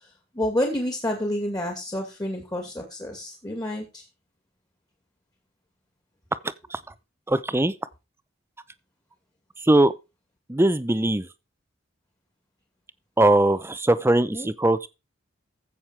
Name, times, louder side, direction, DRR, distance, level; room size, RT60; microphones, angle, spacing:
voice 1, 0.3-4.0 14.3-14.5, left 1 dB, 20° left, 2.4 m, -29 dB
voice 2, 7.3-7.7 9.6-9.9 10.5-11.3 13.2-14.9, right 1 dB, 15° right, 0.6 m, -20 dB
15.0 x 6.5 x 4.6 m
head